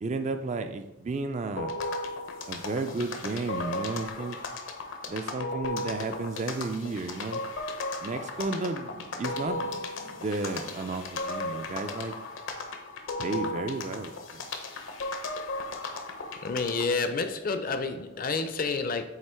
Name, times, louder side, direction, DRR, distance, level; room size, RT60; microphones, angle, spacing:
voice 1, 0.0-1.8 2.5-4.4 5.1-7.4 8.0-9.8 10.1-12.2 13.2-14.5, right 3 dB, 35° right, 8 dB, 0.3 m, -33 dB
sound 1, 1.6-16.9, left 2 dB, 75° left, 0.8 m, -35 dB
voice 2, 16.4-19.0, left 4 dB, 45° left, 9 dB, 0.5 m, -29 dB
7.9 x 2.9 x 4.4 m, 0.95 s
head